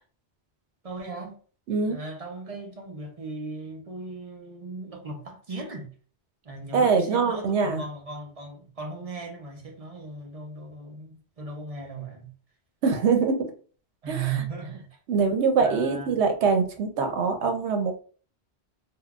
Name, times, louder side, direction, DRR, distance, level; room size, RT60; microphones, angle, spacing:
voice 1, 0.8-1.4 1.8-5.9 6.4-12.3 14.0-15.3 15.6-16.2, right 4 dB, 40° right, 0.6 m, -37 dB
voice 2, 1.7-2.0 6.7-7.8 12.8-13.5 14.1-14.3 15.1-18.0, right 5 dB, 80° right, 0.9 m, -23 dB
3.6 x 2.2 x 2.3 m
omnidirectional pair, 1.1 m